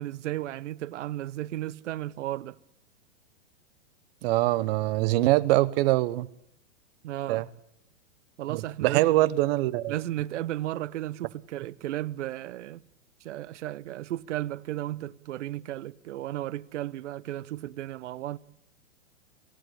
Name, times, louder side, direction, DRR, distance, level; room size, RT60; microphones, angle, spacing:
voice 1, 0.0-2.6 7.0-7.4 8.4-9.3 9.9-12.8 13.2-18.4, right 14 dB, 65° right, 0.9 m, -34 dB
voice 2, 4.2-6.3 7.3-7.4 8.5-9.9, right 17 dB, 50° right, 1.1 m, -23 dB
26.5 x 16.5 x 10.0 m
hypercardioid pair, 125°, 39 cm